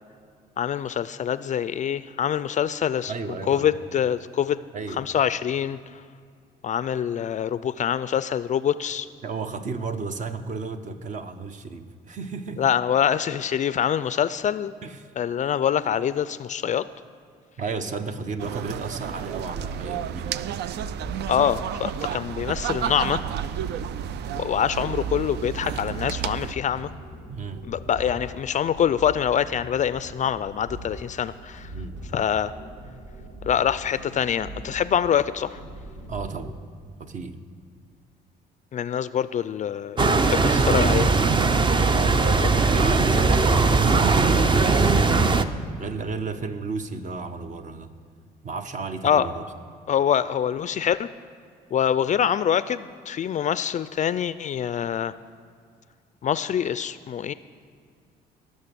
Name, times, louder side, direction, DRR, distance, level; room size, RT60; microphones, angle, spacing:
voice 1, 0.6-3.1 3.5-4.6 5.0-5.8 6.6-9.1 12.6-14.7 15.2-16.9 21.3-23.2 24.4-26.9 27.6-31.7 32.1-32.5 33.5-35.6 38.7-41.1 42.4-42.5 49.0-49.3 49.9-51.1 51.7-55.1 56.2-57.3, left 9 dB, 45° left, 15 dB, 0.4 m, -25 dB
voice 2, 3.1-3.7 4.7-5.0 9.2-12.7 14.8-15.1 17.6-20.4 27.3-27.6 31.7-32.0 36.1-36.5 37.0-37.4 41.9-47.9 48.4-49.5, right 4 dB, 45° right, 9 dB, 0.9 m, -33 dB
sound 1, 18.4-26.5, right 10 dB, 70° right, 0.4 m, -32 dB
sound 2, 19.0-36.6, right 1 dB, 85° right, 2.4 m, -41 dB
sound 3, 40.0-45.4, right 3 dB, 25° right, 0.6 m, -19 dB
17.0 x 6.4 x 6.8 m, 2.2 s
cardioid pair, 95°, 18 cm